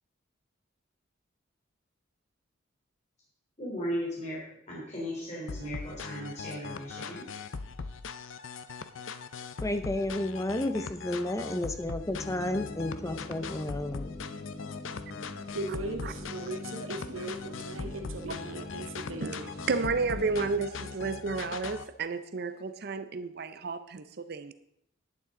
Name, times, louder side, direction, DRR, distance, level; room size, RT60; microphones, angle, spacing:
voice 1, 3.6-4.4 4.7-7.3, equal, 35° left, -5 dB, 3.4 m, -36 dB
sound 1, 5.5-21.9, left 5 dB, 75° left, 0.6 m, -41 dB
voice 2, 9.6-14.1, left 1 dB, 15° left, 9 dB, 0.6 m, -32 dB
sound 2, 12.1-20.5, left 2 dB, 50° left, 1.3 m, -43 dB
voice 3, 15.5-19.5, right 2 dB, 90° right, 5 dB, 1.0 m, -38 dB
voice 4, 19.7-24.5, right 4 dB, 50° right, 12 dB, 0.5 m, -32 dB
11.0 x 9.2 x 3.8 m, 0.74 s
head